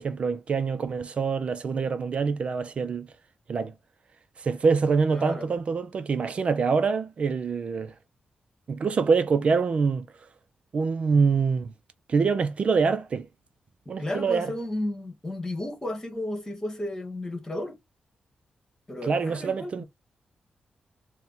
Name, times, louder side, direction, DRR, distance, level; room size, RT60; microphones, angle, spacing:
voice 1, 0.0-3.1 3.5-3.7 4.4-7.9 8.7-10.1 10.7-11.7 12.1-13.3 13.9-14.5 19.0-19.8, right 5 dB, 50° right, 0.5 m, -25 dB
voice 2, 5.1-5.5 14.0-17.8 18.9-19.8, left 1 dB, 20° left, 1.4 m, -33 dB
4.3 x 2.2 x 3.9 m
wide cardioid pair, 110°, 3 cm